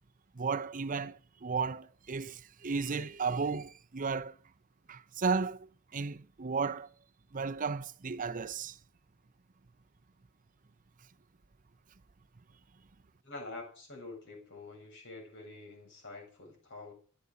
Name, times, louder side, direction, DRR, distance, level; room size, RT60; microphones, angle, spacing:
voice 1, 0.4-4.3 4.9-5.7 5.9-6.9 7.3-8.8, right 5 dB, 40° right, 0.6 m, -34 dB
voice 2, 13.2-16.9, left 2 dB, 55° left, 7.3 m, -47 dB
14.0 x 9.7 x 6.7 m
head